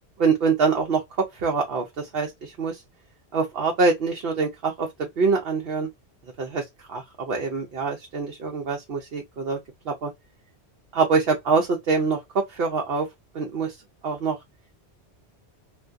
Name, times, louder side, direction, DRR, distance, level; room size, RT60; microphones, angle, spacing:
voice 1, 0.2-1.0 1.4-2.8 3.3-5.9 6.4-9.6 9.9-10.1 10.9-12.2 12.5-13.1 13.3-13.8 14.0-14.4, right 4 dB, 65° right, 0.9 m, -24 dB
3.4 x 2.6 x 2.4 m
omnidirectional pair, 1.1 m